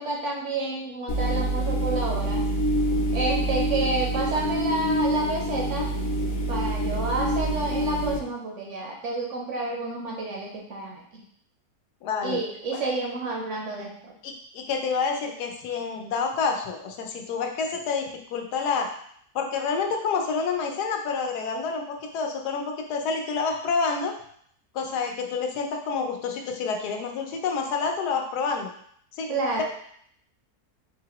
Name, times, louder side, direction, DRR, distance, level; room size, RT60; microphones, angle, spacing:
voice 1, 0.0-2.4 3.1-5.9 6.5-11.2 12.2-14.1 29.3-29.6, right 2 dB, 60° right, -1 dB, 0.9 m, -29 dB
sound 1, 1.1-8.2, right 1 dB, 65° left, 1.0 m, -26 dB
voice 2, 12.0-12.4 12.7-12.8 14.2-18.9 19.3-24.1 24.7-28.7 29.2-29.3, left 5 dB, 85° left, 3 dB, 1.2 m, -28 dB
4.0 x 2.9 x 2.9 m, 0.65 s
omnidirectional pair, 1.7 m